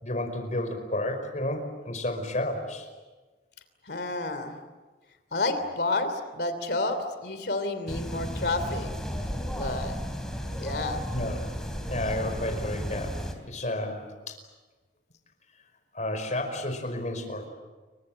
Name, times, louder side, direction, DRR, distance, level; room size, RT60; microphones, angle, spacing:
voice 1, 0.0-2.9 11.1-11.5 11.9-14.4 15.9-17.5, left 1 dB, 45° left, 6 dB, 5.1 m, -31 dB
voice 2, 3.9-4.6 5.3-8.9 9.5-10.0 10.6-11.0, left 2 dB, 65° left, 9 dB, 3.1 m, -30 dB
sound 1, 7.9-13.4, equal, 5° left, 3.4 m, -34 dB
29.5 x 24.0 x 7.7 m, 1.3 s
head